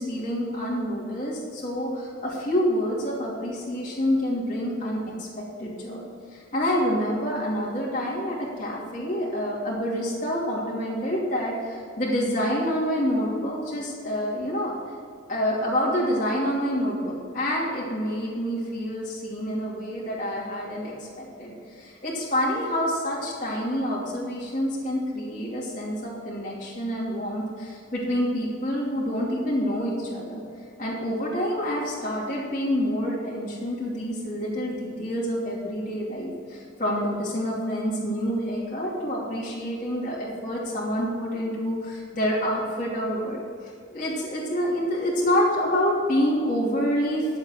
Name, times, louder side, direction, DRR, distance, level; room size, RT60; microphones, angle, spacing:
voice 1, 0.0-14.7 15.3-30.4 30.8-47.4, equal, 40° left, -6 dB, 2.7 m, -27 dB
11.5 x 7.3 x 6.5 m, 2.3 s
head